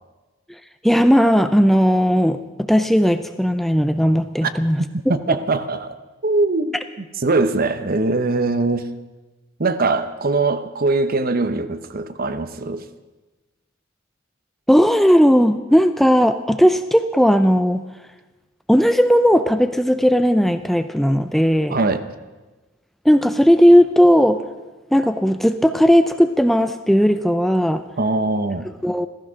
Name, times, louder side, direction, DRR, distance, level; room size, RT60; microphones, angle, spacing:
voice 1, 0.8-4.8 5.1-5.2 14.7-17.8 18.7-21.8 23.1-24.4 24.9-27.8 28.8-29.1, equal, ahead, 0.5 m, -16 dB
voice 2, 4.8-6.0 6.2-8.9 9.6-12.9 21.7-22.0 28.0-28.7, right 3 dB, 45° right, 0.9 m, -21 dB
15.5 x 14.5 x 6.3 m
head